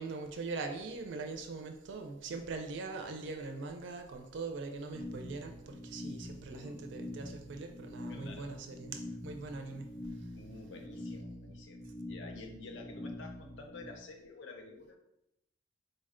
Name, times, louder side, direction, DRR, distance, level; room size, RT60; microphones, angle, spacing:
voice 1, 0.0-9.9, right 3 dB, 60° right, 5 dB, 0.4 m, -42 dB
sound 1, 4.9-13.9, left 1 dB, 15° left, 0.4 m, -45 dB
voice 2, 6.5-6.9 8.1-8.5 10.3-15.0, left 3 dB, 65° left, 4 dB, 0.6 m, -50 dB
4.0 x 2.1 x 3.6 m, 0.84 s
head